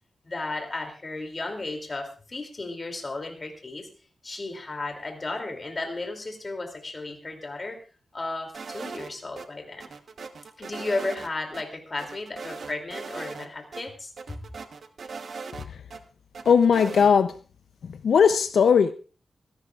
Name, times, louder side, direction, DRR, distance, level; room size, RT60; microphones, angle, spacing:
voice 1, 0.2-3.9 4.2-7.8 8.1-9.9 10.6-14.4, left 2 dB, 30° left, 2.7 m, -34 dB
sound 1, 8.5-9.5 9.8-11.3 11.5-11.6 12.0-13.5 13.7-13.8 14.2-16.0 16.3-17.1, right 4 dB, 60° right, 1.0 m, -39 dB
voice 2, 16.5-17.3 17.8-18.9, left 6 dB, 85° left, 0.6 m, -19 dB
25.0 x 11.5 x 2.4 m
wide cardioid pair, 155°, 0 cm